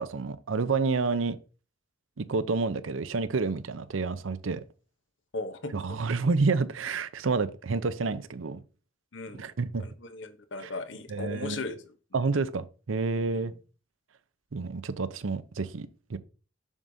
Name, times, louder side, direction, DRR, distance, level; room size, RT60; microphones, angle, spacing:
voice 1, 0.0-1.4 2.2-4.6 5.7-8.6 9.3-9.9 10.6-10.7 11.1-11.6 12.1-13.5 14.5-16.2, right 4 dB, 85° right, 0.6 m, -29 dB
voice 2, 5.3-5.8 9.1-9.4 9.8-11.8 12.1-12.3, left 3 dB, 65° left, 0.9 m, -37 dB
7.2 x 6.4 x 2.7 m
head